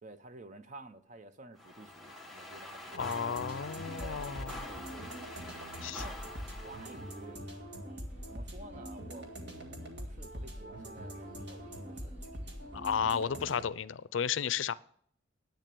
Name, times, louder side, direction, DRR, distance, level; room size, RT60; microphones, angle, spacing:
voice 1, 0.0-3.3 4.0-5.2 5.8-6.2 6.6-7.4 8.3-12.5, right 2 dB, 40° right, 0.7 m, -52 dB
sound 1, 1.5-7.2, left 1 dB, ahead, 1.5 m, -46 dB
voice 2, 2.9-4.6 5.8-6.0 12.7-14.7, left 7 dB, 80° left, 0.5 m, -33 dB
sound 2, 2.9-13.6, equal, 60° right, 2.0 m, -44 dB
sound 3, 3.9-13.3, left 1 dB, 75° right, 3.8 m, -58 dB
10.5 x 9.0 x 6.8 m
head